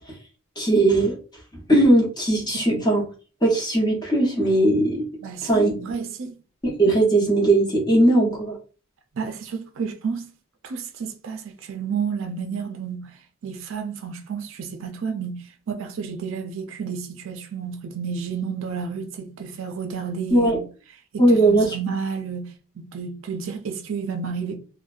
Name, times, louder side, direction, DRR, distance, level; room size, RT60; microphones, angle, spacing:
voice 1, 0.6-1.1 1.7-3.0 3.4-5.0 5.4-5.7 6.8-8.5 20.3-20.6 21.2-21.8, right 1 dB, 20° left, 0.7 m, -18 dB
voice 2, 5.2-6.4 9.2-10.3 10.6-13.1 13.4-20.6 21.1-22.5 22.8-24.6, right 6 dB, 65° right, 0.4 m, -31 dB
2.5 x 2.1 x 2.3 m
head